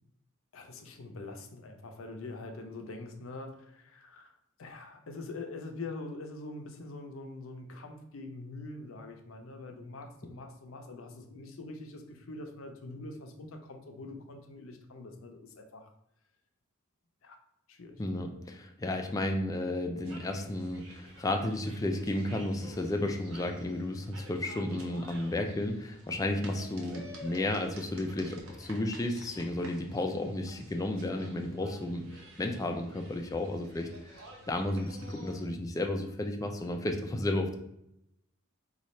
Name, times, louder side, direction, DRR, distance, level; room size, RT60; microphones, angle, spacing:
voice 1, 0.5-15.9 17.2-17.4 17.7-18.0, left 2 dB, 70° left, 5 dB, 0.5 m, -44 dB
voice 2, 18.0-32.1 32.4-37.6, left 1 dB, 15° left, 4 dB, 0.3 m, -33 dB
sound 1, 20.0-35.5, right 1 dB, 80° right, 0.7 m, -51 dB
3.1 x 2.3 x 4.1 m, 0.79 s
head